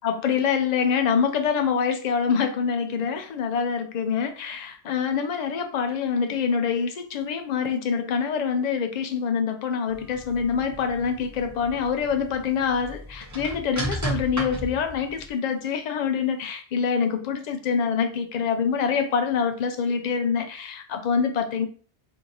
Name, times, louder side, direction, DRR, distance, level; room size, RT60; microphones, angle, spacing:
voice 1, 0.0-21.7, left 6 dB, 50° left, 0.5 m, -25 dB
sound 1, 9.9-15.3, right 1 dB, 20° right, 0.6 m, -35 dB
3.0 x 2.7 x 3.8 m
omnidirectional pair, 1.1 m